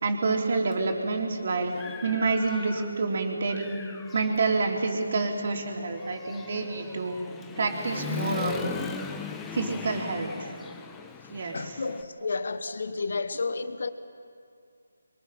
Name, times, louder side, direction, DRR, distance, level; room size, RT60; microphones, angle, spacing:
voice 1, 0.0-1.7 2.0-3.7 4.1-7.2 7.6-8.7 9.5-10.5 11.3-11.6, right 3 dB, 50° right, 3.6 m, -28 dB
Human voice / Motorcycle, 0.7-0.8 1.3-3.1 3.4-12.0, left 6 dB, 10° left, 1.1 m, -39 dB
voice 2, 11.3-13.9, left 4 dB, 60° left, 1.2 m, -32 dB
28.0 x 23.5 x 5.7 m
figure-of-eight pair, 155°, 0 cm